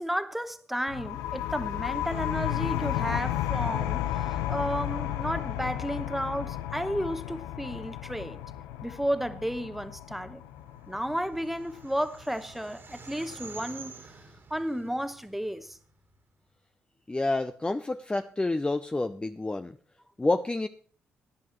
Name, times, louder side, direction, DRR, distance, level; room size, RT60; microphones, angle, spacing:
voice 1, 0.0-8.4 8.8-10.4 10.9-13.9 14.5-15.8, equal, 5° right, 1.1 m, -32 dB
sound 1, 0.9-12.2, left 12 dB, 80° left, 0.6 m, -33 dB
sound 2, 10.7-16.1, right 4 dB, 45° right, 2.2 m, -48 dB
voice 2, 17.1-19.8 20.2-20.7, left 2 dB, 20° left, 0.6 m, -28 dB
17.0 x 10.5 x 3.2 m
hypercardioid pair, 45°, 5 cm